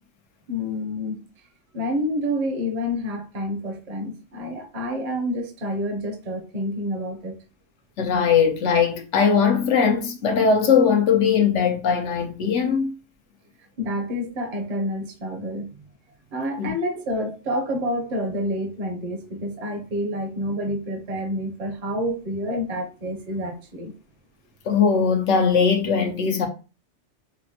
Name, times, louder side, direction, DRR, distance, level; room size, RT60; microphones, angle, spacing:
voice 1, 0.5-1.3 1.7-7.4 13.8-15.8 16.3-23.9, equal, 40° right, 0.6 m, -28 dB
voice 2, 8.0-12.9 16.6-16.7 24.7-26.5, left 6 dB, 75° left, 1.0 m, -20 dB
4.9 x 2.1 x 2.8 m
omnidirectional pair, 1.2 m